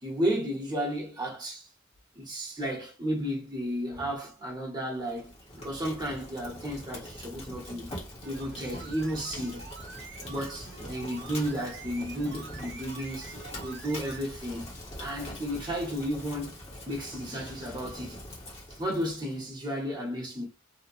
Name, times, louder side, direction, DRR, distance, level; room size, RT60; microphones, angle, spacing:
voice 1, 0.0-1.7 2.1-7.9 8.2-9.6 10.3-13.4 13.6-14.7 15.0-18.2 18.7-20.4, equal, 20° right, 1.2 m, -33 dB
Fire, 5.0-19.4, left 1 dB, 30° left, 1.2 m, -43 dB
sound 1, 8.2-14.3 14.5-14.6, right 5 dB, 55° right, 0.5 m, -47 dB
2.9 x 2.5 x 2.6 m
head